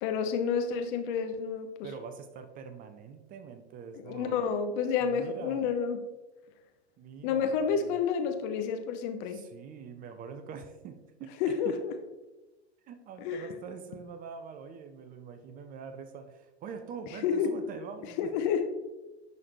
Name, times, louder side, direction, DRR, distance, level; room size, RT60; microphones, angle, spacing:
voice 1, 0.0-1.9 3.9-6.0 7.2-9.4 11.4-11.9 13.2-13.4 17.2-17.6 18.2-18.6, left 6 dB, 50° left, 7 dB, 0.8 m, -29 dB
voice 2, 1.8-4.4 5.0-5.7 7.0-8.1 9.3-11.7 12.8-18.3, right 6 dB, 25° right, 8 dB, 0.5 m, -44 dB
10.5 x 4.0 x 3.0 m, 1.1 s
hypercardioid pair, 105°, 33 cm